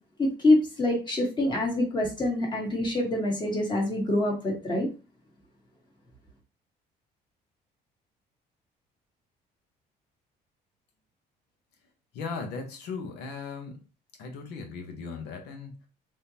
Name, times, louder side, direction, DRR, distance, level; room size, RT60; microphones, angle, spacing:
voice 1, 0.2-4.9, left 1 dB, 25° left, -1 dB, 1.5 m, -25 dB
voice 2, 12.1-13.8 14.2-15.9, left 4 dB, 85° left, 3 dB, 1.0 m, -37 dB
3.5 x 2.8 x 2.8 m, 0.32 s
cardioid pair, 110°, 17 cm